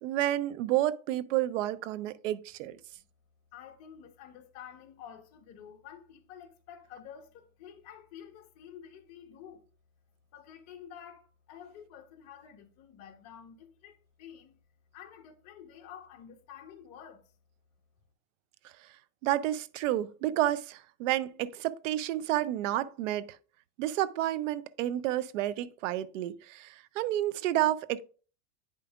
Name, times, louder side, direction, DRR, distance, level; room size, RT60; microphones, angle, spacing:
voice 1, 0.0-2.8 19.2-23.4 23.8-28.0, right 13 dB, 65° right, 0.6 m, -30 dB
voice 2, 3.5-9.7 10.3-14.6 14.9-17.2, left 8 dB, 40° left, 1.2 m, -50 dB
9.6 x 5.1 x 2.4 m
supercardioid pair, 150°, 41 cm